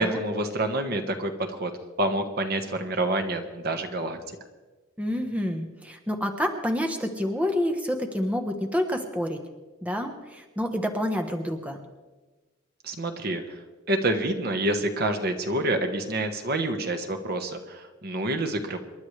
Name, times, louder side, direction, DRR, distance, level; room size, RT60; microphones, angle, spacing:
voice 1, 0.0-1.7 2.0-4.2 12.8-13.6 13.9-18.8, right 1 dB, 55° right, 6 dB, 1.3 m, -27 dB
voice 2, 5.0-9.4 9.8-11.8, left 1 dB, 5° right, 4 dB, 1.1 m, -28 dB
27.5 x 11.5 x 3.3 m, 1.2 s
head